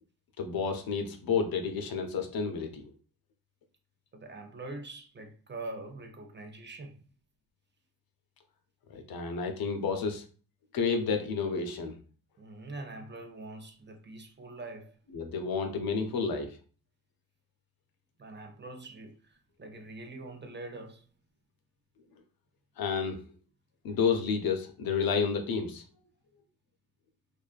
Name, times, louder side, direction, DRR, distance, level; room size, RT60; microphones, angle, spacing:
voice 1, 0.4-2.9 8.9-10.2 10.7-12.0 15.1-16.6 22.8-23.2 23.8-25.8, left 5 dB, 65° left, 0.6 m, -30 dB
voice 2, 4.1-7.0 12.4-14.9 18.2-21.0, right 2 dB, 30° right, 0.5 m, -44 dB
2.5 x 2.3 x 2.4 m
supercardioid pair, 50°, 39 cm